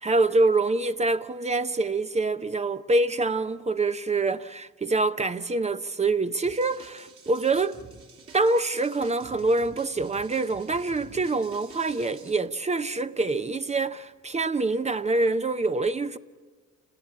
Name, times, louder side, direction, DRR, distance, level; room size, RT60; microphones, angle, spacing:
voice 1, 0.0-7.8 8.3-16.2, right 3 dB, 20° right, 0.6 m, -25 dB
sound 1, 6.4-12.3, right 4 dB, 50° right, 2.6 m, -49 dB
28.5 x 17.5 x 8.6 m
cardioid pair, 90°, 30 cm